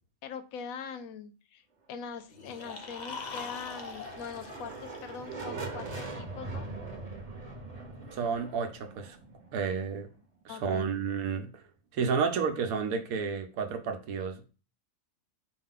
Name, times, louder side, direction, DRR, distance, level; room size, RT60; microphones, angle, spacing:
voice 1, 0.2-1.6 1.9-6.7 10.5-10.9, left 6 dB, 80° left, 1.0 m, -42 dB
sound 1, 2.3-5.5, left 5 dB, 60° left, 0.4 m, -43 dB
sound 2, 2.4-10.2, right 3 dB, 30° right, 0.9 m, -42 dB
voice 2, 8.1-9.2 9.5-10.1 10.4-11.6 11.9-14.5, right 6 dB, 80° right, 1.1 m, -31 dB
5.0 x 2.3 x 3.7 m
omnidirectional pair, 1.5 m